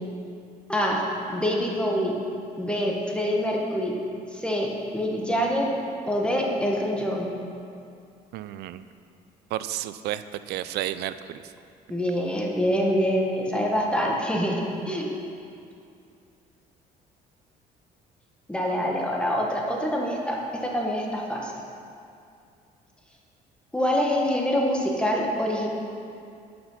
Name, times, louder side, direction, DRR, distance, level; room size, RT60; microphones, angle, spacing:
voice 1, 0.7-1.0 1.3-2.1 2.6-4.0 4.3-5.7 6.1-7.3 11.9-15.1 18.5-21.5 23.7-25.7, equal, 5° left, -1 dB, 1.3 m, -25 dB
voice 2, 8.3-8.8 9.5-11.4, right 13 dB, 75° right, 13 dB, 0.4 m, -32 dB
8.7 x 6.1 x 5.5 m, 2.5 s
cardioid pair, 110°, 17 cm